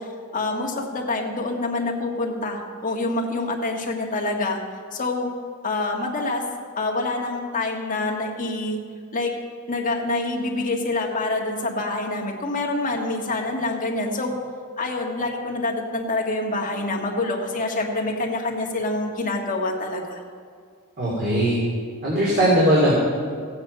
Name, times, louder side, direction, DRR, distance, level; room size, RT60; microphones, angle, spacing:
voice 1, 0.0-4.6 4.9-5.3 5.6-6.4 6.8-8.8 9.1-9.3 9.7-14.3 14.8-20.2, left 2 dB, 35° left, 0 dB, 1.6 m, -26 dB
voice 2, 21.0-21.6 22.0-22.9, right 1 dB, 45° right, -6 dB, 3.0 m, -19 dB
15.5 x 8.9 x 5.5 m, 2.1 s
head